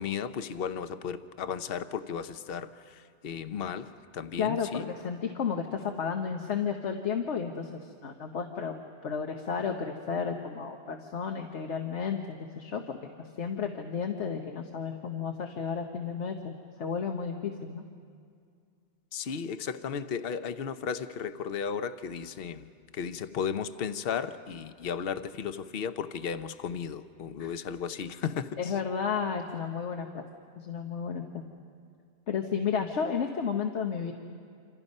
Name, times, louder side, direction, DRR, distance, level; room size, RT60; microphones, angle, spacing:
voice 1, 0.0-4.9 19.1-28.7, left 7 dB, 60° left, 11 dB, 0.9 m, -35 dB
voice 2, 4.4-8.7 9.0-17.8 27.4-27.5 28.6-30.2 30.6-31.4 32.3-34.1, left 6 dB, 80° left, 4 dB, 1.3 m, -32 dB
27.0 x 27.0 x 5.4 m, 2.2 s
omnidirectional pair, 1.2 m